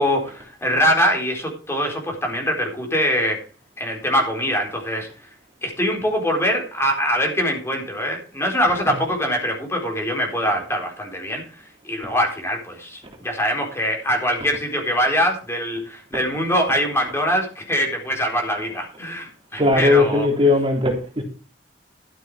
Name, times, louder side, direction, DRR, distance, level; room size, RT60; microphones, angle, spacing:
voice 1, 0.0-3.4 3.8-5.1 5.6-20.3, equal, 15° left, 4.1 m, -23 dB
voice 2, 19.6-21.2, left 2 dB, 30° right, 3.5 m, -18 dB
13.0 x 7.6 x 5.0 m
head